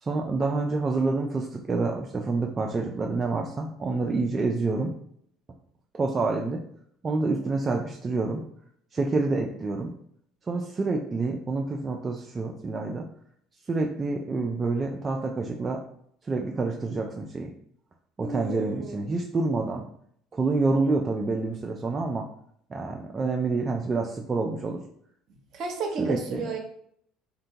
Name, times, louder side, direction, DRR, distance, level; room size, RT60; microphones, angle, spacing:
voice 1, 0.0-4.9 5.9-6.6 7.0-8.4 8.9-9.9 10.5-13.1 13.7-15.8 16.2-17.5 18.2-19.9 20.3-22.3 22.7-24.8 26.0-26.5, right 3 dB, 30° right, 1 dB, 0.3 m, -27 dB
voice 2, 18.2-19.0 25.5-26.6, right 4 dB, 55° right, 2 dB, 0.7 m, -33 dB
2.7 x 2.1 x 2.7 m, 0.67 s
hypercardioid pair, 70°, 0 cm